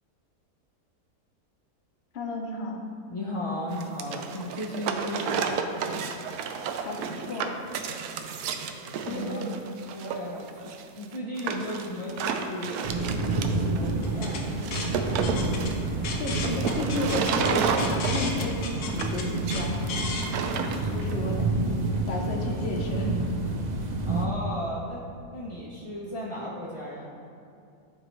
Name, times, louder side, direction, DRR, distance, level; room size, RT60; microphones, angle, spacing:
voice 1, 2.1-2.8 6.8-7.0 7.3-7.6 9.1-9.5 16.2-20.1 20.9-21.5 22.1-23.1, left 2 dB, 50° left, 1 dB, 1.0 m, -33 dB
voice 2, 3.1-5.8 8.7-9.5 9.9-12.9 13.4-14.6 20.6-21.3 24.0-25.0 25.3-27.1, left 1 dB, 35° left, -6 dB, 0.5 m, -36 dB
sound 1, 3.7-21.1, right 6 dB, 80° right, 1.1 m, -31 dB
sound 2, 12.8-24.3, right 2 dB, 60° right, 0.4 m, -29 dB
sound 3, 14.0-20.3, left 4 dB, 80° left, 1.3 m, -36 dB
11.5 x 4.6 x 3.1 m, 2.5 s
omnidirectional pair, 1.6 m